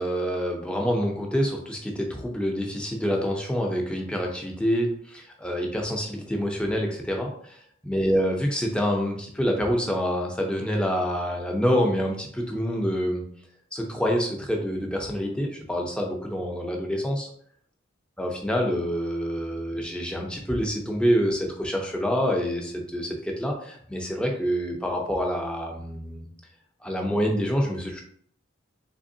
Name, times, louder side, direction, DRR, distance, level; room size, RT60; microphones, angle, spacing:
voice 1, 0.0-13.2 13.7-17.3 18.2-26.3 26.8-28.0, equal, 5° left, 1 dB, 0.5 m, -27 dB
3.5 x 3.3 x 2.6 m, 0.63 s
head